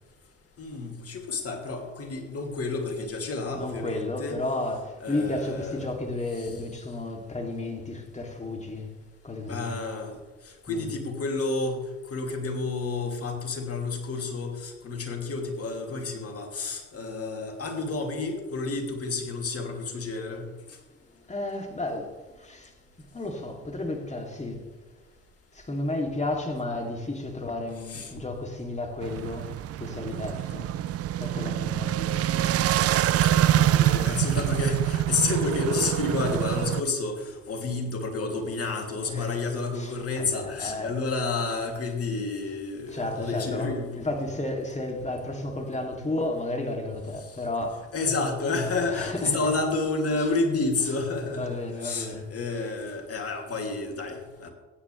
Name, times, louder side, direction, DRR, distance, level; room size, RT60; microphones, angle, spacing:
voice 1, 0.6-4.4 5.0-5.8 6.4-6.5 9.5-10.2 10.7-20.5 27.9-28.1 33.2-44.1 47.9-54.5, left 3 dB, 45° left, 2.8 m, -30 dB
voice 2, 3.5-8.9 9.2-9.8 10.7-10.9 21.3-22.7 23.1-24.7 25.5-29.5 29.8-30.7 31.2-32.6 39.1-39.4 39.7-41.0 42.9-47.9 48.8-49.5 50.1-50.4 51.4-52.3 52.5-52.6, left 2 dB, 20° left, 2.8 m, -33 dB
sound 1, 29.0-36.8, right 12 dB, 50° right, 0.5 m, -25 dB
15.5 x 9.7 x 3.3 m
hypercardioid pair, 55°, 32 cm